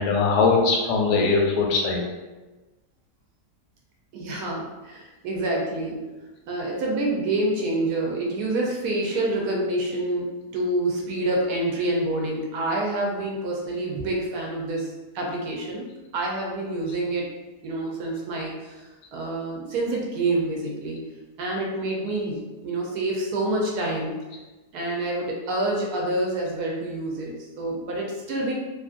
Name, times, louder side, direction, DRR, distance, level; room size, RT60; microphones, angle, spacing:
voice 1, 0.0-2.0, left 4 dB, 85° left, 0 dB, 1.2 m, -21 dB
voice 2, 4.1-6.1 6.5-15.9 16.1-17.3 17.6-21.0 21.4-24.2 24.7-28.5, right 2 dB, 75° right, -2 dB, 1.1 m, -27 dB
2.9 x 2.5 x 2.4 m, 1.2 s
omnidirectional pair, 1.7 m